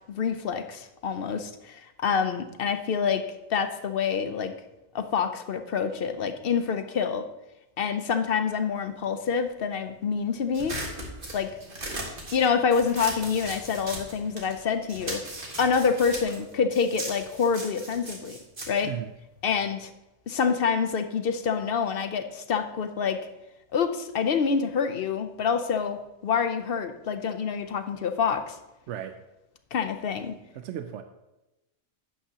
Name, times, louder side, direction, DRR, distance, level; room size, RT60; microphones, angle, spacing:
voice 1, 0.1-3.2 3.5-4.5 4.9-7.3 7.8-10.8 11.3-11.5 12.3-15.2 15.6-18.4 18.7-18.9 19.4-19.9 20.3-23.2 23.7-28.6 29.7-30.4, left 6 dB, 60° left, 9 dB, 0.8 m, -27 dB
sound 1, 10.5-14.6 14.9-19.7, right 1 dB, 50° right, 1.8 m, -38 dB
voice 2, 28.9-29.2 30.5-31.0, right 10 dB, 75° right, 8 dB, 0.9 m, -35 dB
11.5 x 8.4 x 2.9 m, 0.96 s
omnidirectional pair, 1.2 m